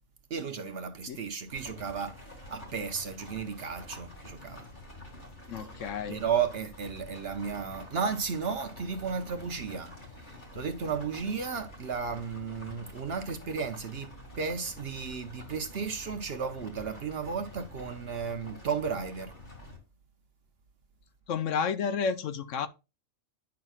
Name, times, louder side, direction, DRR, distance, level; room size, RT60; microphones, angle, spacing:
voice 1, 0.3-4.6 5.6-5.7 6.1-9.9 10.3-19.3, right 6 dB, 55° right, 0.8 m, -34 dB
sound 1, 1.5-19.8, left 1 dB, 35° left, 2.2 m, -48 dB
voice 2, 5.5-6.2 21.3-22.7, left 6 dB, 70° left, 0.9 m, -31 dB
9.4 x 5.8 x 2.4 m
omnidirectional pair, 1.4 m